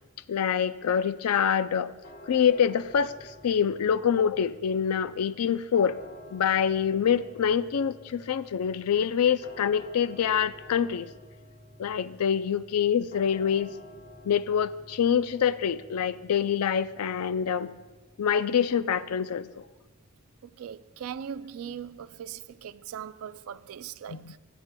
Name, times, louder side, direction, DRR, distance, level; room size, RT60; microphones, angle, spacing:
voice 1, 0.3-1.9 2.3-6.0 6.3-11.1 11.8-13.7 14.2-17.7 18.2-19.6 24.1-24.3, left 8 dB, 90° left, 0.4 m, -26 dB
sound 1, 2.0-20.9, left 1 dB, 45° left, 1.1 m, -51 dB
voice 2, 20.4-24.4, right 8 dB, 65° right, 0.3 m, -40 dB
16.5 x 9.4 x 2.2 m
head